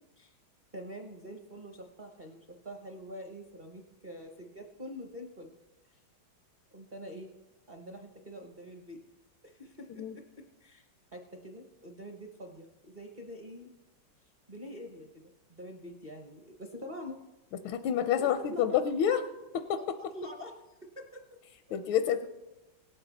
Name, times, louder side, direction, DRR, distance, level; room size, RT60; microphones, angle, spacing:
voice 1, 0.7-5.6 5.9-6.0 6.7-7.3 7.7-9.0 9.4-10.2 10.6-10.9 11.1-13.7 14.5-15.1 15.5-17.2 18.2-18.8 20.0-21.2 21.7-21.8, equal, 40° right, 2 dB, 0.7 m, -45 dB
voice 2, 17.6-19.2 19.5-19.8 21.7-22.3, left 9 dB, 85° left, 10 dB, 1.4 m, -28 dB
17.5 x 8.2 x 4.0 m, 1.0 s
omnidirectional pair, 2.2 m